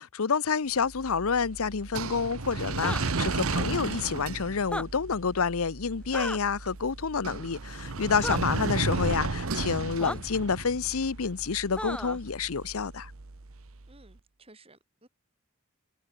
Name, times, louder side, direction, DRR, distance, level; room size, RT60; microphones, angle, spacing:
voice 1, 0.0-13.1, left 5 dB, 75° left, 0.7 m, -29 dB
sound 1, 0.8-13.9, right 3 dB, 70° right, 1.1 m, -34 dB
sound 2, 2.7-3.0 4.6-4.9 6.1-6.4 8.2-8.4 10.0-10.2 11.8-12.2, left 1 dB, 5° left, 3.3 m, -33 dB
voice 2, 8.2-8.6 13.9-15.1, right 3 dB, 25° right, 5.5 m, -53 dB
head